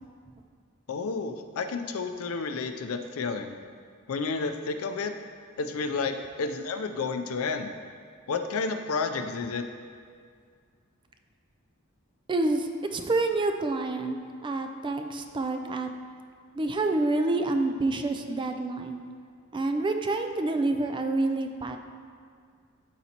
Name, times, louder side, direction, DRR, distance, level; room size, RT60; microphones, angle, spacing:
voice 1, 0.9-3.6 4.1-5.1 5.6-7.7 8.3-9.7, left 4 dB, 80° left, 7 dB, 0.5 m, -31 dB
voice 2, 12.3-15.9 16.6-19.0 19.5-21.8, right 2 dB, 20° right, 6 dB, 0.4 m, -28 dB
12.0 x 4.1 x 2.9 m, 2.1 s
head